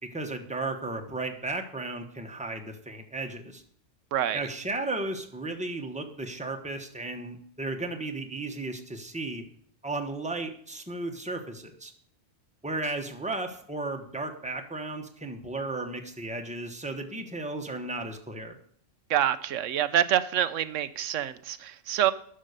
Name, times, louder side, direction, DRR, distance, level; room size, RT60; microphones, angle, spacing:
voice 1, 0.0-3.6 4.3-9.4 9.8-11.9 12.6-18.6, right 2 dB, 5° right, 4 dB, 1.1 m, -34 dB
voice 2, 19.1-22.1, right 11 dB, 85° right, 13 dB, 1.0 m, -26 dB
11.5 x 6.5 x 6.6 m, 0.63 s
omnidirectional pair, 1.3 m